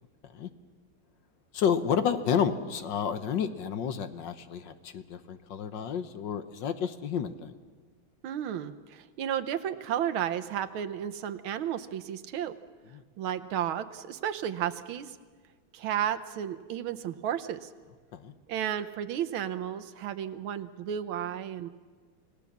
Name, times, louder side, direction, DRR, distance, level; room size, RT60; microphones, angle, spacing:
voice 1, 1.5-7.5 18.1-18.3, left 7 dB, 65° left, 10 dB, 1.6 m, -30 dB
voice 2, 8.2-12.6 13.2-15.2 15.7-17.7 18.5-21.7, right 10 dB, 90° right, 9 dB, 1.7 m, -33 dB
28.5 x 18.0 x 7.3 m, 1.5 s
omnidirectional pair, 2.2 m